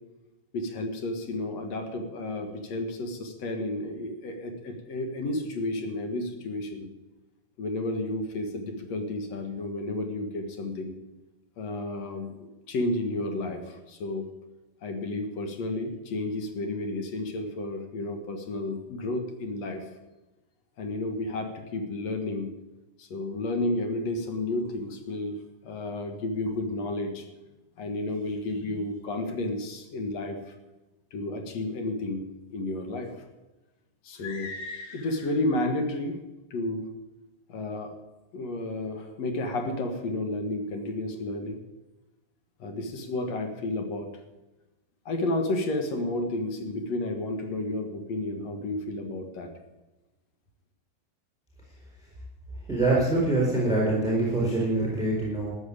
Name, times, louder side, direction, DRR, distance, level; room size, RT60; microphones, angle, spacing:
voice 1, 0.5-6.9 7.6-11.0 11.6-14.3 14.8-19.9 20.8-22.5 23.0-27.3 27.8-30.5 31.1-33.1 34.0-36.2 36.5-36.9 37.5-37.9 38.3-41.6 42.6-44.1 45.1-49.5, left 2 dB, 55° left, 5 dB, 2.1 m, -31 dB
voice 2, 52.7-55.5, right 2 dB, ahead, -4 dB, 3.6 m, -24 dB
13.5 x 9.5 x 8.7 m, 1.1 s
omnidirectional pair, 4.8 m